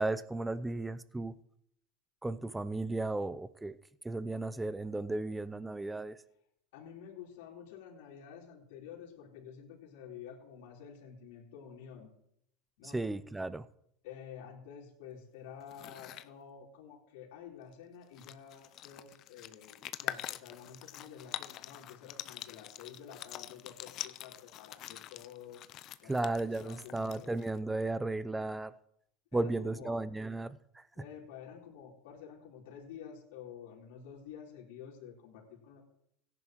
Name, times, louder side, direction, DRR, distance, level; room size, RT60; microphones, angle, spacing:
voice 1, 0.0-1.3 2.2-3.8 4.0-6.2 12.8-13.6 26.1-28.7 29.3-30.8, right 2 dB, 10° right, 0.6 m, -35 dB
voice 2, 6.7-12.1 12.8-13.1 14.0-25.6 26.0-27.3 29.3-30.0 30.9-35.8, left 8 dB, 75° left, 4.0 m, -50 dB
sound 1, 15.6-16.3 17.7-17.8 18.0-27.6, left 13 dB, 50° left, 0.5 m, -45 dB
17.0 x 10.5 x 3.1 m
hypercardioid pair, 95°, 0 cm